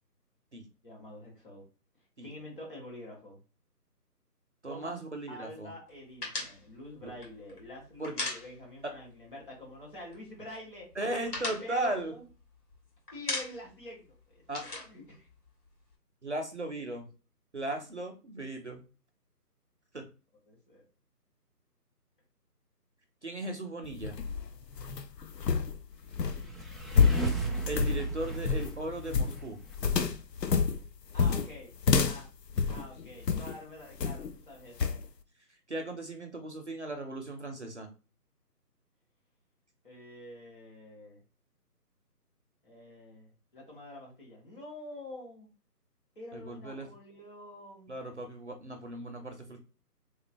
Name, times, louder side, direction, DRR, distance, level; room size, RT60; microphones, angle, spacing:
voice 1, 0.8-1.7 2.2-3.4 4.7-5.0 5.3-10.9 11.4-12.2 13.1-15.3 20.5-20.8 26.7-26.8 31.1-31.7 32.0-32.3 32.7-34.9 39.8-41.2 42.6-45.5 46.1-47.9, left 1 dB, 35° left, -3 dB, 1.6 m, -47 dB
voice 2, 4.6-5.7 7.0-7.1 8.0-8.1 8.8-8.9 11.0-12.1 14.5-14.6 16.2-17.1 17.5-18.8 19.9-20.0 23.2-24.2 27.7-29.6 35.7-37.9 46.3-46.9 47.9-49.6, right 2 dB, 45° right, 4 dB, 0.6 m, -37 dB
sound 1, 6.2-9.0 9.3-9.4 9.7-10.4 10.8-12.7 13.1-13.8 14.1-15.9, left 2 dB, 70° left, 2.1 m, -38 dB
sound 2, 23.8-33.6 34.0-34.4 34.8-35.0, left 5 dB, 85° left, 0.7 m, -29 dB
sound 3, 26.2-29.7, right 4 dB, ahead, 0.4 m, -36 dB
3.8 x 3.0 x 2.5 m, 0.33 s
figure-of-eight pair, 165°, 48 cm